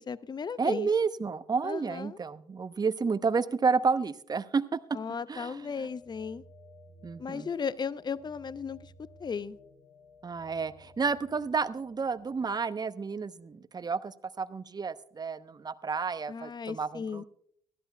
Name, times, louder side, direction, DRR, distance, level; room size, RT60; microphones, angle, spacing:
voice 1, 0.0-0.9 1.6-2.2 4.9-6.4 7.2-8.9 9.2-9.6 16.3-17.2, left 6 dB, 30° left, 18 dB, 0.6 m, -36 dB
voice 2, 0.6-5.0 5.3-5.6 7.0-7.5 10.2-17.2, right 5 dB, 30° right, 14 dB, 0.8 m, -31 dB
sound 1, 5.3-12.6, left 2 dB, 70° left, 4.5 m, -56 dB
20.0 x 13.5 x 2.2 m, 0.67 s
figure-of-eight pair, 45°, 14 cm